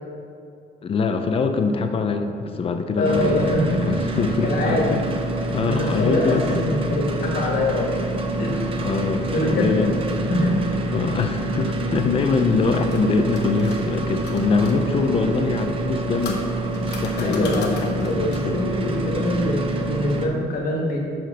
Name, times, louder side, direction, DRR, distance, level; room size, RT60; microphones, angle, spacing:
voice 1, 0.8-5.0 5.5-6.7 8.8-10.3 10.9-16.4 16.8-17.7 18.0-18.6, left 4 dB, 35° left, 6 dB, 0.5 m, -23 dB
voice 2, 3.0-3.8 4.4-5.0 5.4-8.0 8.3-8.9 9.3-10.8 17.2-21.0, left 1 dB, 60° left, -2 dB, 1.5 m, -24 dB
sound 1, 3.0-20.3, right 2 dB, 30° right, 0.6 m, -27 dB
sound 2, 12.5-14.8 15.7-18.6, left 4 dB, 80° left, 1.0 m, -38 dB
5.8 x 5.1 x 5.4 m, 2.5 s
cardioid pair, 165°, 17 cm